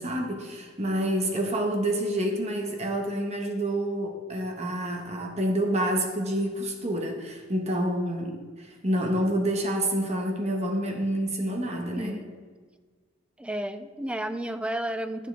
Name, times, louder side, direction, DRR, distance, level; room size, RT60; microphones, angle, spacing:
voice 1, 0.0-12.2, right 1 dB, 35° right, 2 dB, 1.1 m, -28 dB
voice 2, 12.0-12.3 13.4-15.3, right 1 dB, 5° right, 9 dB, 0.4 m, -32 dB
12.0 x 7.4 x 3.4 m, 1.5 s
head